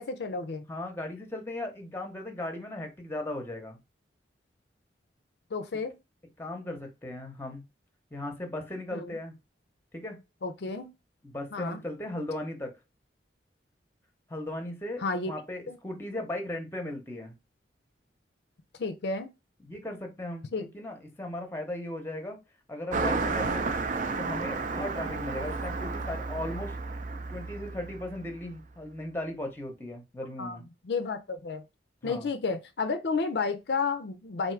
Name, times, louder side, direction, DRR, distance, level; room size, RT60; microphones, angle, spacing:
voice 1, 0.0-0.6 5.5-5.9 8.9-9.2 10.4-10.9 11.5-11.8 15.0-15.3 15.7-15.8 18.8-19.3 20.5-20.7 30.4-30.6 30.8-31.6 32.0-34.5, left 4 dB, 65° left, 0.5 m, -31 dB
voice 2, 0.7-3.8 6.4-7.6 8.1-9.3 9.9-10.2 11.2-12.7 14.3-17.4 19.6-22.4 22.7-23.7 24.2-26.8 27.3-30.6 32.0-32.3, left 1 dB, 15° left, 0.7 m, -37 dB
Car passing by, 22.9-28.7, right 3 dB, 45° right, 0.5 m, -32 dB
3.5 x 2.6 x 4.4 m
head